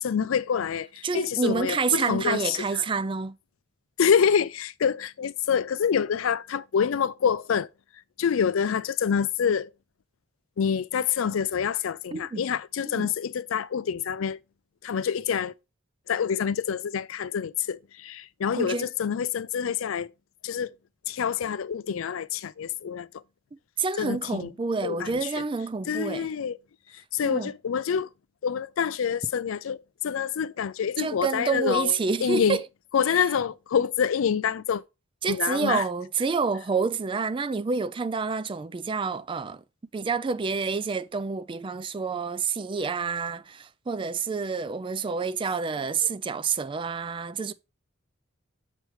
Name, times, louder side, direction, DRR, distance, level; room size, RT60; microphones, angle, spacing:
voice 1, 0.0-2.6 4.0-7.7 8.2-9.7 10.6-14.4 14.8-15.5 16.1-20.1 20.4-20.7 21.1-23.1 24.0-24.5 24.8-25.4 25.9-26.6 27.1-28.1 28.4-32.6 32.9-34.8 35.3-35.8, left 7 dB, 80° left, 0.4 m, -26 dB
voice 2, 1.0-3.4 12.1-12.4 12.9-13.1 18.6-18.9 23.8-26.3 27.2-27.5 31.0-32.6 35.2-39.6 39.9-47.5, right 5 dB, 25° right, 0.3 m, -28 dB
7.5 x 3.1 x 4.9 m
head